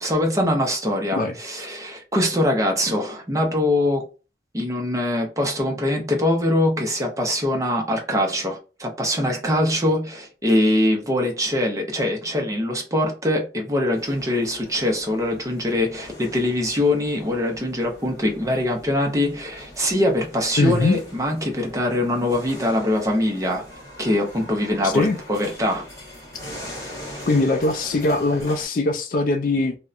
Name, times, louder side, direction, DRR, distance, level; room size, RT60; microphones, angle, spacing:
voice 1, 0.0-4.0 4.5-23.6 24.0-25.9, left 1 dB, 20° right, 0.5 m, -23 dB
sound 1, 13.9-28.6, equal, 20° left, 1.0 m, -42 dB
voice 2, 20.6-21.0 24.8-25.2 27.3-29.8, left 2 dB, 50° left, 0.3 m, -21 dB
2.7 x 2.0 x 2.3 m
head